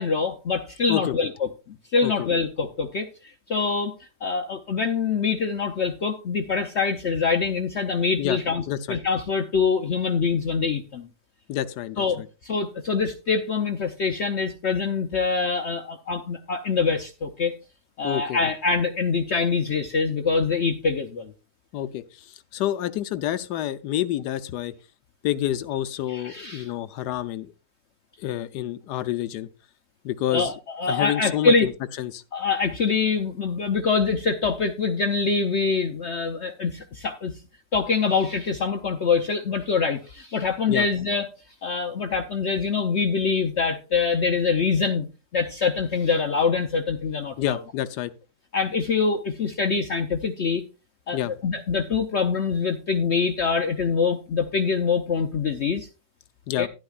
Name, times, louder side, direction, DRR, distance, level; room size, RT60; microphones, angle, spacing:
voice 1, 0.0-1.5 1.9-3.1 3.5-3.9 4.2-11.1 12.0-17.6 18.0-21.3 26.1-26.7 30.3-31.7 32.3-37.3 37.7-41.3 41.6-45.1 45.3-47.6 48.5-50.6 51.1-55.9 56.6-56.7, left 5 dB, 55° left, 0.8 m, -24 dB
voice 2, 8.7-9.0 11.5-12.3 18.0-18.4 21.7-24.7 25.2-27.5 28.2-29.5 30.0-30.5 30.9-31.7 32.0-32.2 40.7-40.9 47.4-48.1 51.1-51.3 56.5-56.7, left 12 dB, 80° left, 1.2 m, -28 dB
11.5 x 11.0 x 2.4 m
omnidirectional pair, 1.8 m